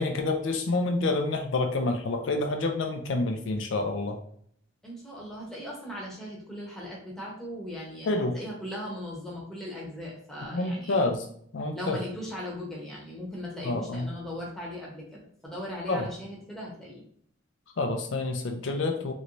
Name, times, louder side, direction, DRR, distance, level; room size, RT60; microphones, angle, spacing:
voice 1, 0.0-4.2 8.1-8.4 10.5-11.2 11.5-12.0 13.6-14.1 15.9-16.1 17.8-19.1, left 2 dB, 75° left, 4 dB, 0.5 m, -28 dB
voice 2, 4.8-11.0 11.7-17.0, left 1 dB, ahead, -5 dB, 0.9 m, -38 dB
3.1 x 3.0 x 2.6 m, 0.64 s
head